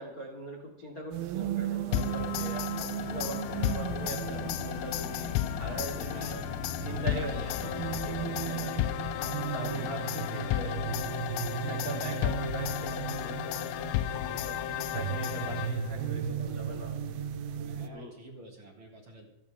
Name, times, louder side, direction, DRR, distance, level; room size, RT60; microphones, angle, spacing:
voice 1, 0.0-6.4 6.8-8.7 9.5-10.8 11.7-16.9 17.9-18.1, right 1 dB, 35° left, 0 dB, 1.3 m, -41 dB
sound 1, 1.1-17.9, right 9 dB, 75° right, 2.5 m, -36 dB
sound 2, 1.9-16.0, left 14 dB, 80° left, 2.7 m, -34 dB
sound 3, 2.7-9.4, left 6 dB, 65° left, 2.9 m, -42 dB
voice 2, 6.0-7.0 8.2-8.6 17.6-19.3, right 2 dB, 30° right, -1 dB, 3.5 m, -48 dB
27.5 x 11.0 x 3.5 m, 0.94 s
omnidirectional pair, 5.2 m